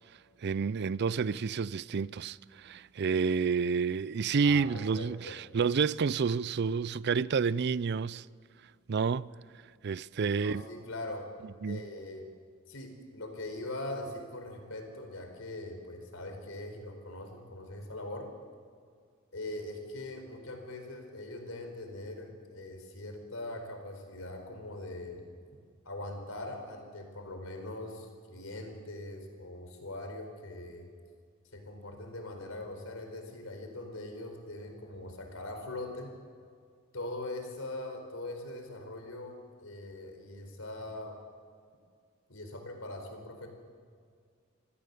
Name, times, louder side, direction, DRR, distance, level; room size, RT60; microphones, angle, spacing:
voice 1, 0.4-8.2 8.9-9.3 9.8-10.6 11.6-11.8, right 5 dB, 55° right, 0.4 m, -29 dB
voice 2, 4.4-5.4 10.3-11.3 11.7-12.3 12.7-18.3 19.3-25.3 25.8-30.9 31.5-36.1 36.9-41.2 42.3-43.5, left 2 dB, 80° left, 4.4 m, -41 dB
26.0 x 15.5 x 6.9 m
head